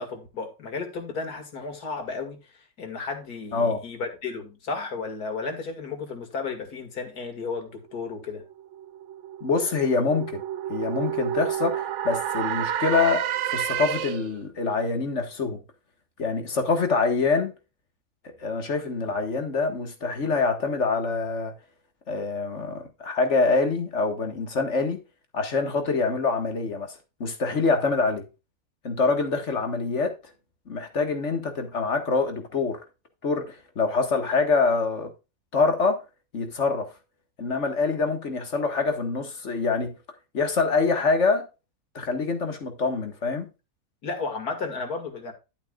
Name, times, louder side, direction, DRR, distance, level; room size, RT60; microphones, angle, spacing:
voice 1, 0.0-8.4 44.0-45.3, left 4 dB, 90° left, 2.5 m, -33 dB
sound 1, 8.3-14.4, right 10 dB, 65° right, 0.8 m, -30 dB
voice 2, 9.4-10.4 10.7-15.6 16.2-17.5 18.4-21.5 22.1-25.0 25.3-28.2 28.8-30.1 30.7-32.8 33.2-35.1 35.5-36.0 36.3-36.9 37.4-39.9 40.3-41.5 42.0-43.5, left 4 dB, 50° left, 1.8 m, -25 dB
11.5 x 8.4 x 2.3 m
omnidirectional pair, 1.6 m